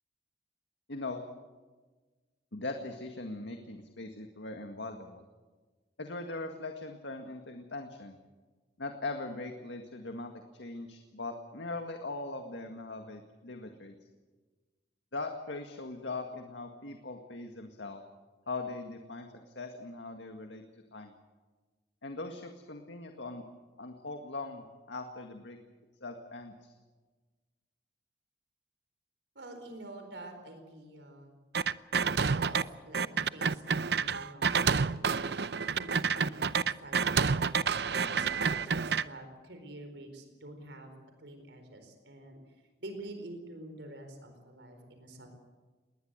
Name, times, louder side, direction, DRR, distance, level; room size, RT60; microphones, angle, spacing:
voice 1, 0.9-1.2 2.5-5.2 6.0-8.2 8.8-13.9 15.1-18.0 18.5-19.3 19.6-20.6 20.9-21.1 22.0-23.4 23.8-25.6 26.0-26.7, left 2 dB, 90° left, 4 dB, 1.9 m, -40 dB
voice 2, 29.3-31.3 32.3-35.3 35.7-37.6 38.1-40.9 41.2-42.4 42.8-45.3, right 1 dB, 80° right, 6 dB, 4.4 m, -47 dB
sound 1, 31.5-32.6 32.9-39.0, right 5 dB, 65° right, 0.6 m, -29 dB
21.0 x 19.0 x 8.1 m, 1.3 s
head